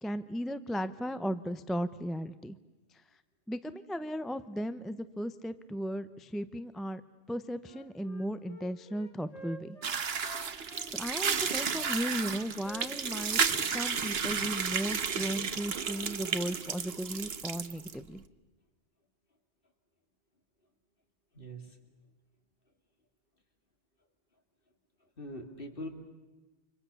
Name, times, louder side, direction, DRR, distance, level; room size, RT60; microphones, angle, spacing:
voice 1, 0.0-2.6 2.9-3.0 3.5-7.0 7.3-9.8 10.5-18.2, equal, ahead, 12 dB, 0.6 m, -36 dB
Wind instrument woodwind instrument, 7.6-10.9 11.3-14.7, left 1 dB, 30° left, 1.8 m, -50 dB
sound 1, 9.8-17.9, right 6 dB, 60° right, 1.3 m, -32 dB
voice 2, 21.3-21.8 25.2-25.9, equal, 50° left, 4 dB, 3.0 m, -42 dB
30.0 x 25.5 x 7.0 m, 1.2 s
omnidirectional pair, 1.2 m